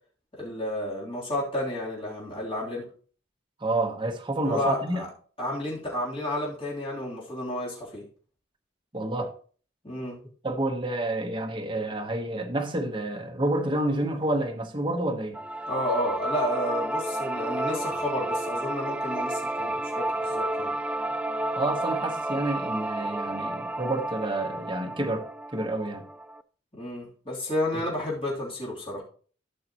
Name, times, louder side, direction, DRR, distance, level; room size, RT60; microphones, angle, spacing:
voice 1, 0.3-2.8 4.4-5.1 5.4-8.0 9.8-10.2 15.7-20.7 26.7-29.0, left 1 dB, 30° left, 3.3 m, -31 dB
voice 2, 3.6-5.0 8.9-9.3 10.4-15.4 21.6-26.0, right 1 dB, 25° right, 1.2 m, -29 dB
sound 1, 15.3-26.4, right 1 dB, 5° right, 0.3 m, -31 dB
13.0 x 5.9 x 3.0 m
head